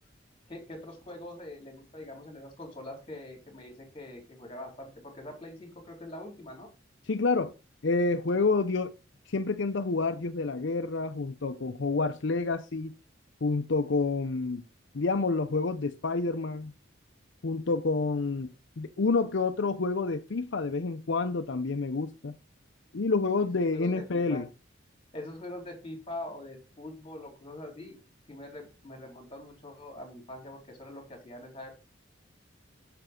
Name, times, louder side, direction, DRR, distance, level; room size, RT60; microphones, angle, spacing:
voice 1, 0.5-6.7 23.3-23.4 23.7-24.4 25.1-28.0 28.3-31.7, left 1 dB, 30° left, 3.7 m, -43 dB
voice 2, 7.1-7.5 7.8-8.9 9.3-12.9 13.4-14.6 14.9-16.7 17.4-22.3 22.9-24.5, left 3 dB, 70° left, 0.6 m, -28 dB
9.2 x 6.8 x 3.8 m
head